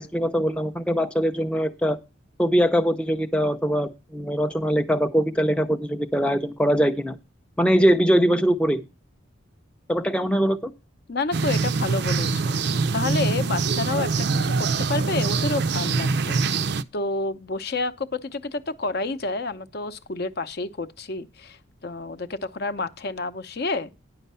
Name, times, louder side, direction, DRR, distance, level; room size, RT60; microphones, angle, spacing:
voice 1, 0.0-2.0 2.4-7.2 7.6-8.8 9.9-10.7, equal, 5° left, 0.5 m, -22 dB
voice 2, 11.1-12.6 12.9-14.1 14.6-16.4 16.9-23.9, left 3 dB, 50° left, 0.6 m, -29 dB
sound 1, 11.3-16.8, right 4 dB, 55° right, 0.5 m, -24 dB
10.0 x 5.7 x 5.4 m
head